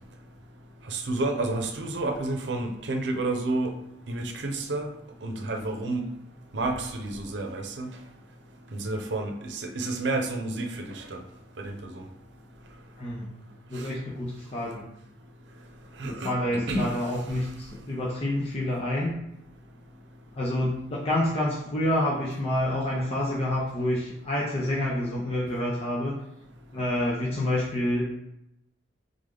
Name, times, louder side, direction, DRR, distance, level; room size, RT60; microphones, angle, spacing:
voice 1, 0.9-3.7 4.1-4.9 5.2-6.0 6.5-7.9 8.7-11.2 11.6-12.0 13.7-13.9 16.0-16.9, right 2 dB, 75° right, 4 dB, 0.7 m, -30 dB
voice 2, 13.0-13.3 13.7-14.8 16.0-19.2 20.4-26.1 26.7-28.0, left 1 dB, 35° left, -5 dB, 0.7 m, -28 dB
3.6 x 3.4 x 3.8 m, 0.85 s
head